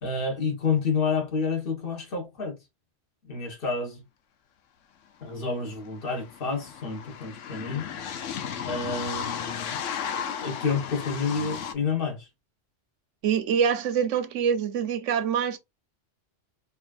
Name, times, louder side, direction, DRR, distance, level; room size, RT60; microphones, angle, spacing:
voice 1, 0.0-2.5 3.2-4.0 5.2-7.9 8.6-9.8 10.4-12.2, left 5 dB, 50° left, 1.3 m, -29 dB
sound 1, 5.2-5.3 5.5-11.7, left 8 dB, 85° left, 1.0 m, -34 dB
voice 2, 13.2-15.6, right 7 dB, 85° right, 1.0 m, -25 dB
4.5 x 2.8 x 2.3 m
omnidirectional pair, 1.2 m